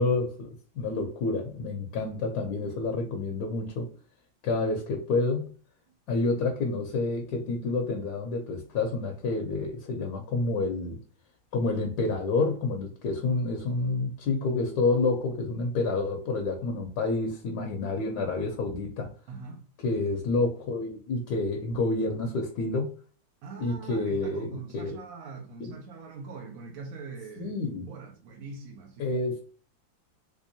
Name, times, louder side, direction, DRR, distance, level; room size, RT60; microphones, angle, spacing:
voice 1, 0.0-3.9 4.4-5.5 6.1-11.0 11.5-19.1 19.8-22.9 23.6-25.0 25.6-25.7 27.4-27.9 29.0-29.4, left 3 dB, 70° left, 1.1 m, -29 dB
voice 2, 19.3-19.6 23.4-27.5 27.9-29.2, right 4 dB, 60° right, 0.9 m, -42 dB
3.5 x 3.3 x 2.6 m
omnidirectional pair, 2.1 m